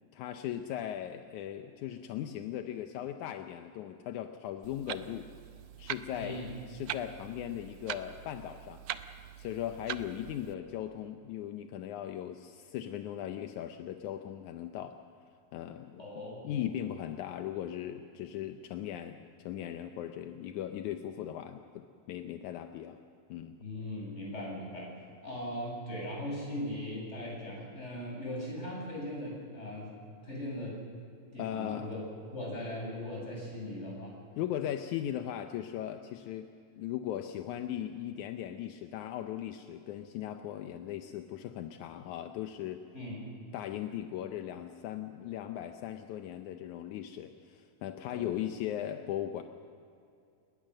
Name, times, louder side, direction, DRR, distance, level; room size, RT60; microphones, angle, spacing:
voice 1, 0.1-5.3 5.8-8.8 9.4-15.0 15.5-23.0 23.3-23.6 31.4-31.9 34.4-36.5 36.8-42.8 43.5-49.4, left 11 dB, 75° left, 6 dB, 1.8 m, -38 dB
Clock, 4.6-10.5, right 12 dB, 75° right, 2.1 m, -43 dB
voice 2, 6.1-6.6 16.0-16.6 23.6-24.9 25.2-29.9 30.2-30.8 31.3-32.0 32.3-34.2 42.9-43.3 48.1-48.3, left 1 dB, 15° left, -3 dB, 8.1 m, -39 dB
28.5 x 19.5 x 6.5 m, 2.5 s
omnidirectional pair, 4.2 m